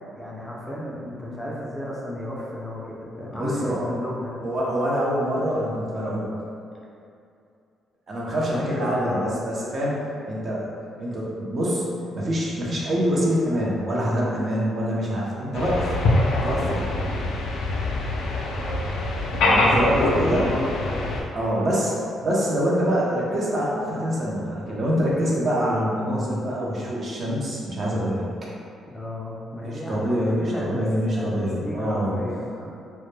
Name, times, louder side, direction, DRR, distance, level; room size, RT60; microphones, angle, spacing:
voice 1, 0.0-4.4 8.4-9.4 19.6-21.9 22.3-22.4 28.9-32.7, left 1 dB, 10° left, -5 dB, 0.4 m, -33 dB
voice 2, 3.3-3.9 4.4-6.3 8.1-10.0 10.3-10.7 11.0-11.9 12.1-15.9 16.3-16.9 19.4-20.5 21.3-21.9 22.2-28.2 29.6-32.2, equal, 45° right, -5 dB, 0.6 m, -25 dB
sound 1, 15.5-21.2, left 2 dB, 85° left, 0.3 m, -24 dB
2.1 x 2.1 x 3.1 m, 2.5 s
cardioid pair, 90°, 0 cm